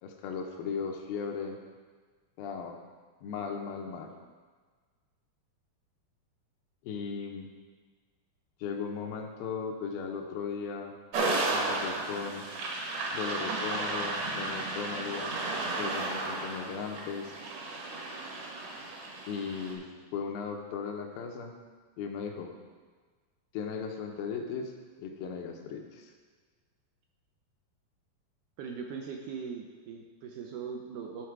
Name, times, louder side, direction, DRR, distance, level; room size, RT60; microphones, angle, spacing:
voice 1, 0.0-1.6 2.4-2.8 3.2-4.1 6.8-7.5 8.6-10.9 11.5-12.5 13.1-15.3 15.8-17.4 19.3-21.5 22.0-22.5 23.5-24.7 25.0-26.1, left 6 dB, 85° left, 3 dB, 2.6 m, -37 dB
sound 1, 11.1-19.7, right 2 dB, 60° right, 2.1 m, -33 dB
voice 2, 28.6-31.3, right 6 dB, 80° right, 2 dB, 1.9 m, -40 dB
11.5 x 4.2 x 4.7 m, 1.5 s
omnidirectional pair, 4.1 m